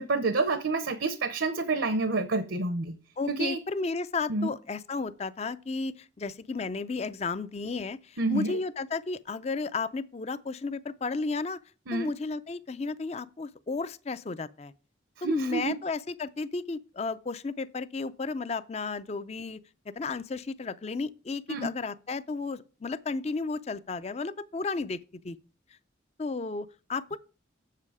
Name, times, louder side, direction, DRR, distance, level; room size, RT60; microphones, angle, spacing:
voice 1, 0.0-2.9 3.4-3.6 4.3-4.5 8.2-8.6 11.9-12.1 15.2-15.7 21.5-21.7, right 3 dB, 70° right, 0.8 m, -28 dB
voice 2, 3.2-11.6 11.9-14.7 15.2-19.6 20.0-25.0 25.2-25.4 26.2-27.2, left 4 dB, 30° left, 0.4 m, -33 dB
7.5 x 7.4 x 4.8 m
head